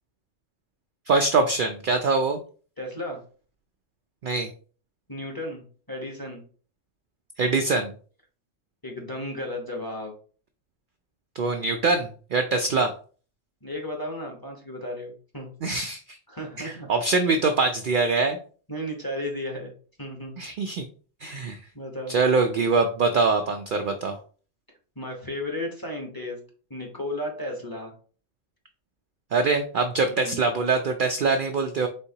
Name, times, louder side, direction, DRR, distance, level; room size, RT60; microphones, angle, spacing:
voice 1, 1.1-2.4 4.2-4.5 7.4-7.9 11.4-12.9 15.6-16.2 16.6-18.4 20.4-20.9 21.2-21.6 22.1-24.2 29.3-31.9, right 4 dB, 65° right, 5 dB, 0.5 m, -23 dB
voice 2, 2.8-3.2 5.1-6.4 8.8-10.1 13.6-15.5 16.3-16.9 18.7-19.7 20.0-20.4 21.7-22.2 25.0-26.4 26.7-27.9 30.0-30.4, left 1 dB, 20° left, 0 dB, 0.9 m, -34 dB
4.3 x 3.8 x 2.7 m, 0.40 s
omnidirectional pair, 1.3 m